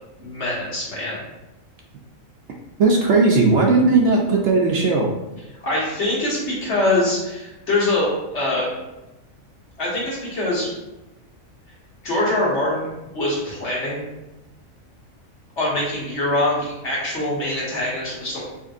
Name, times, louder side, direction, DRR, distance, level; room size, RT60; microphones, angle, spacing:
voice 1, 0.2-1.2 5.6-8.7 9.8-10.7 12.0-14.0 15.6-18.4, left 1 dB, 55° left, -6 dB, 1.7 m, -23 dB
voice 2, 2.8-5.1, right 3 dB, 65° right, 0 dB, 0.8 m, -17 dB
5.1 x 3.0 x 2.5 m, 0.99 s
omnidirectional pair, 1.4 m